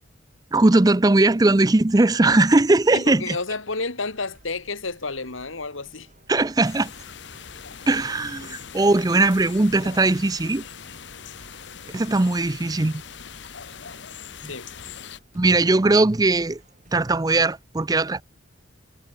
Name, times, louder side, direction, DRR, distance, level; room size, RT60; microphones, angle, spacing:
voice 1, 0.5-3.4 6.3-6.9 7.9-10.6 11.9-13.0 14.4-14.5 15.3-16.6 16.9-18.2, right 2 dB, 20° right, 0.5 m, -19 dB
voice 2, 2.9-6.1 8.4-8.6 14.4-14.7, left 3 dB, 75° left, 2.7 m, -31 dB
sound 1, 4.0-17.2, right 1 dB, 35° right, 5.8 m, -56 dB
sound 2, 6.6-15.2, left 7 dB, 60° left, 1.0 m, -41 dB
head